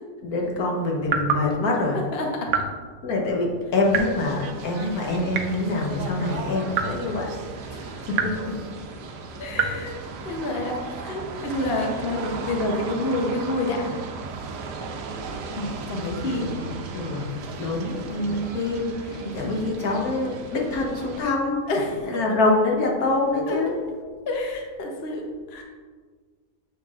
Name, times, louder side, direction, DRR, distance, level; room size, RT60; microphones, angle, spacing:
voice 1, 0.2-2.0 3.0-7.3 7.8-8.8 11.4-11.5 16.2-21.7 22.0-23.7, left 2 dB, 65° left, -1 dB, 1.4 m, -26 dB
sound 1, 1.1-1.5 2.5-2.8 3.9-4.2 5.3-5.7 6.7-7.0 8.1-8.4 9.5-9.8, right 6 dB, 70° right, 0.9 m, -26 dB
voice 2, 2.1-2.6 7.7-7.8 8.4-8.5 9.4-9.9 10.2-10.8 11.0-13.9 15.5-16.5 18.1-18.5 19.1-19.7 21.7-22.2 23.5-23.8 24.3-25.6, left 1 dB, 45° left, 0 dB, 0.9 m, -28 dB
sound 2, 3.8-21.2, right 4 dB, 85° right, 1.2 m, -36 dB
7.3 x 5.9 x 2.4 m, 1.5 s
omnidirectional pair, 1.7 m